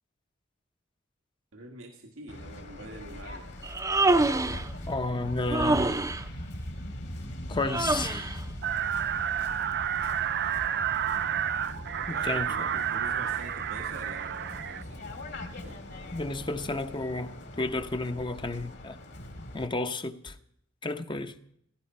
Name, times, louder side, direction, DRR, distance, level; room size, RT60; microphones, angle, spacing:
voice 1, 1.5-3.5 12.0-15.0 15.6-15.8, right 2 dB, 90° right, 1.7 m, -45 dB
Waves surf, 2.3-19.7, left 1 dB, 55° left, 2.3 m, -41 dB
Human voice, 3.6-4.7 5.5-6.2 7.7-8.4, right 2 dB, 15° right, 0.7 m, -25 dB
voice 2, 4.9-5.9 7.5-8.4 12.1-12.7 15.4-15.5 16.1-19.0 19.5-20.4 20.8-21.4, left 2 dB, 25° left, 0.8 m, -32 dB
sound 1, 8.6-14.8, right 9 dB, 55° right, 0.6 m, -30 dB
16.0 x 15.0 x 5.5 m
head